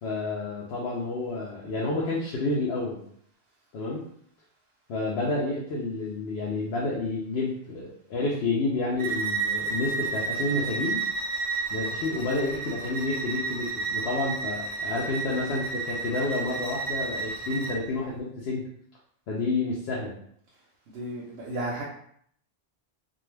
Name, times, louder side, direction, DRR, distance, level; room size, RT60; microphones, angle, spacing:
voice 1, 0.0-3.0 3.7-4.0 4.9-11.0 11.7-18.7 19.3-20.1, left 2 dB, 80° left, -4 dB, 0.8 m, -29 dB
Bowed string instrument, 9.0-17.8, right 4 dB, 45° right, 0.5 m, -31 dB
voice 2, 20.9-21.8, right 1 dB, 85° right, -2 dB, 0.8 m, -33 dB
2.3 x 2.3 x 3.1 m, 0.67 s
omnidirectional pair, 1.1 m